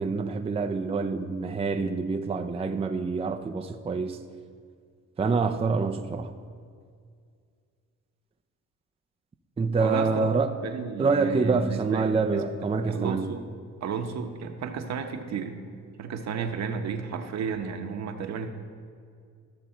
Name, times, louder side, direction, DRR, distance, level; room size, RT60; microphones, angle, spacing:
voice 1, 0.0-4.2 5.2-6.3 9.6-10.5 11.0-13.3, right 4 dB, 20° right, 0.5 m, -26 dB
voice 2, 9.8-10.3 10.6-12.4 12.9-13.4 13.8-15.6 16.0-18.5, right 6 dB, 60° right, 1.0 m, -33 dB
13.0 x 6.7 x 4.3 m
cardioid pair, 90°, 30 cm